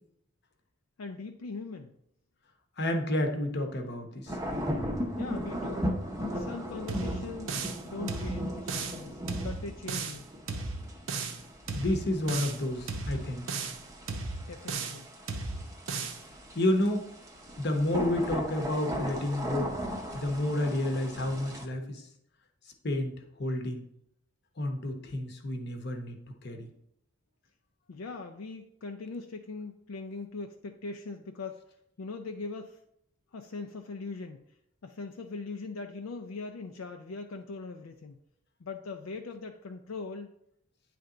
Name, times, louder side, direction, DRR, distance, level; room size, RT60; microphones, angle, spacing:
voice 1, 1.0-1.9 5.2-5.9 6.3-10.3 14.5-15.1 27.9-31.6 32.0-32.8 33.3-34.4 34.8-38.2 38.6-40.3, left 3 dB, 75° left, 5 dB, 0.4 m, -41 dB
voice 2, 2.8-4.4 11.7-13.4 16.5-17.1 17.6-19.7 20.1-22.0 22.8-23.1 23.4-23.8 24.6-26.2 26.4-26.7, left 1 dB, 50° left, 4 dB, 0.9 m, -30 dB
sound 1, 4.3-21.6, equal, 15° right, 0.6 m, -37 dB
sound 2, 6.9-7.8 8.1-9.0 9.3-10.2 10.5-11.4 11.7-12.6 12.9-13.8 14.1-15.0 15.3-16.2, right 4 dB, 65° right, 0.7 m, -35 dB
9.3 x 3.4 x 3.8 m, 0.76 s
head